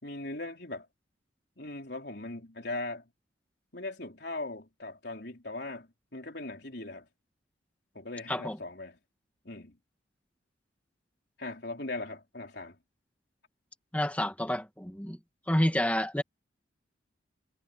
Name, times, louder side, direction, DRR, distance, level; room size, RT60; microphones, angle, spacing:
voice 1, 0.0-0.9 1.6-3.1 3.7-7.1 7.9-9.0 9.4-9.8 11.4-12.8, left 2 dB, 60° left, 4.5 m, -39 dB
voice 2, 13.9-15.2 15.5-16.2, left 1 dB, 5° left, 2.3 m, -29 dB
head